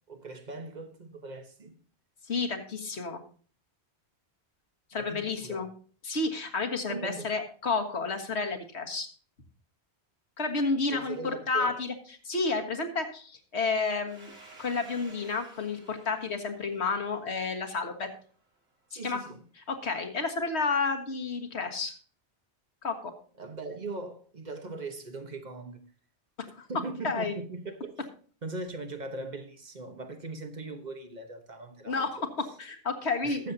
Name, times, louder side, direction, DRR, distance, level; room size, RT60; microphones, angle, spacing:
voice 1, 0.1-1.8 4.9-5.7 6.9-7.4 10.9-11.8 19.0-19.4 23.4-25.8 26.7-28.0 28.4-32.3 33.2-33.5, right 3 dB, 40° right, 1.3 m, -40 dB
voice 2, 2.3-3.2 4.9-5.7 6.0-9.1 10.4-11.9 12.2-14.3 14.6-18.1 18.9-19.2 19.7-21.9 22.8-23.1 26.4-26.7 27.0-27.4 31.9-33.4, left 4 dB, 70° left, 1.8 m, -31 dB
Domestic sounds home sounds, 14.1-18.5, right 2 dB, 65° right, 2.6 m, -54 dB
20.5 x 7.4 x 2.7 m
omnidirectional pair, 1.1 m